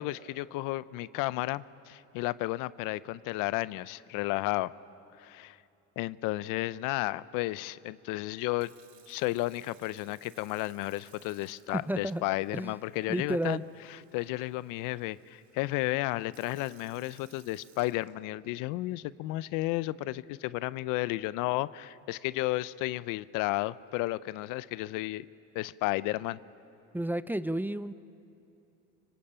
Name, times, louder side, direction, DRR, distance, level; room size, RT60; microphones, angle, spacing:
voice 1, 0.0-4.7 5.2-5.6 6.0-8.7 9.1-13.6 14.1-25.3 25.5-26.4, left 18 dB, 75° left, 18 dB, 0.6 m, -33 dB
Sink (filling or washing) / Fill (with liquid), 8.4-18.6 19.3-19.6, right 8 dB, 60° right, 2.8 m, -62 dB
voice 2, 11.7-12.2 12.5-12.8 13.1-13.6 26.9-27.9, right 1 dB, 5° right, 14 dB, 0.6 m, -31 dB
25.0 x 24.0 x 8.8 m, 2.8 s
supercardioid pair, 90°, 32 cm